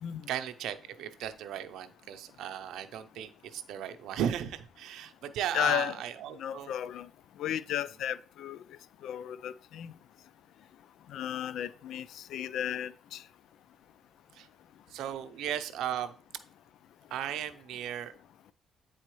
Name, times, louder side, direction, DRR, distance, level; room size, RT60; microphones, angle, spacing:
voice 1, 0.3-6.7 14.3-14.5 14.9-16.1 17.1-18.1, right 10 dB, 85° right, 0.6 m, -36 dB
voice 2, 5.5-6.0 6.4-7.1 7.4-8.6 9.0-9.9 11.1-13.2, left 10 dB, 80° left, 0.3 m, -34 dB
9.0 x 4.2 x 3.0 m
cardioid pair, 90°, 0 cm